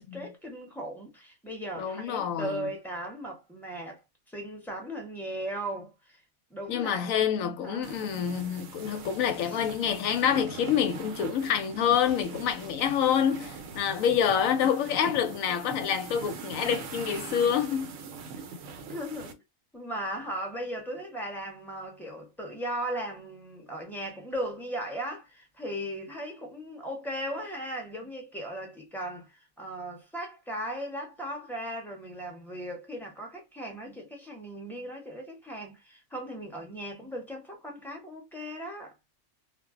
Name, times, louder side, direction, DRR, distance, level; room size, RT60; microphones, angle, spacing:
voice 1, 0.0-4.0 4.3-6.2 6.5-7.3 7.6-7.9 9.5-9.6 18.9-19.4 19.7-38.9, right 1 dB, ahead, 0.7 m, -37 dB
voice 2, 1.8-2.7 6.7-17.9, left 8 dB, 70° left, 0.9 m, -27 dB
sound 1, 7.8-19.3, right 4 dB, 70° right, 0.9 m, -42 dB
2.4 x 2.0 x 3.6 m
omnidirectional pair, 1.5 m